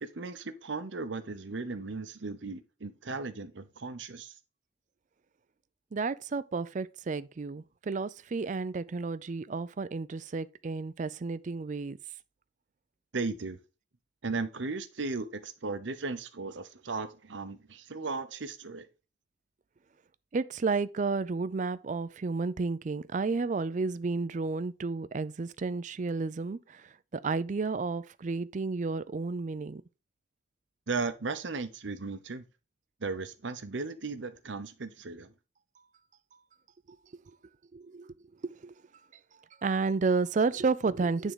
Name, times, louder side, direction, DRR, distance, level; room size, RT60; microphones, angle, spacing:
voice 1, 0.0-4.3 13.1-13.6 14.2-18.9 30.9-32.4 33.0-35.3, right 3 dB, 80° right, 0.9 m, -36 dB
voice 2, 5.9-12.0 20.3-26.6 27.1-29.8 37.7-38.0 38.6-38.7 39.6-41.3, right 4 dB, 40° right, 0.4 m, -31 dB
9.2 x 3.7 x 4.8 m
head